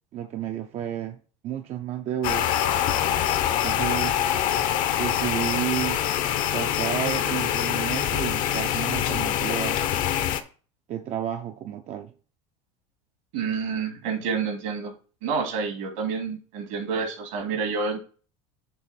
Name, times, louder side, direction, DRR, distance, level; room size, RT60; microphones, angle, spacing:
voice 1, 0.1-2.5 3.6-4.6 5.0-6.0 6.5-9.8 10.9-12.1, right 10 dB, 40° right, 0.6 m, -31 dB
sound 1, 2.2-10.4, left 11 dB, 55° left, 0.9 m, -25 dB
voice 2, 13.3-14.9 15.2-18.0, right 5 dB, 75° right, 2.6 m, -28 dB
7.0 x 3.3 x 6.1 m
supercardioid pair, 105°, 17 cm